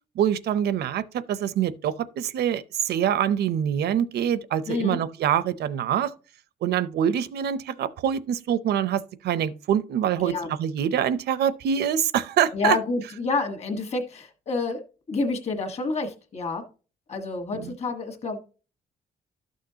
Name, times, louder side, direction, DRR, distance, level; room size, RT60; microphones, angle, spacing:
voice 1, 0.2-6.1 6.6-12.8 17.5-17.7, right 9 dB, 90° right, 0.6 m, -25 dB
voice 2, 4.7-5.0 10.2-10.5 12.5-14.8 15.1-16.6 17.1-18.4, left 3 dB, 40° left, 1.5 m, -28 dB
12.5 x 6.4 x 2.8 m
wide cardioid pair, 175°, 16 cm